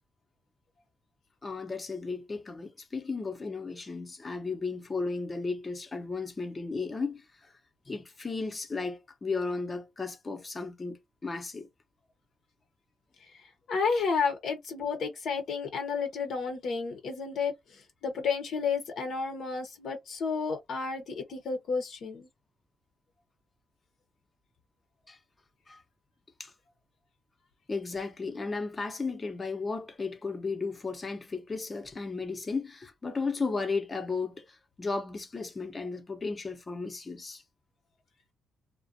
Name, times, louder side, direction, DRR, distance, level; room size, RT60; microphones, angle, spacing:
voice 1, 1.4-7.5 7.9-11.7 25.1-25.2 25.7-25.8 26.4-26.5 27.7-37.4, left 4 dB, 30° left, 0.7 m, -34 dB
voice 2, 13.3-22.3, left 5 dB, 65° left, 0.7 m, -32 dB
2.4 x 2.1 x 2.6 m
cardioid pair, 90°, 0 cm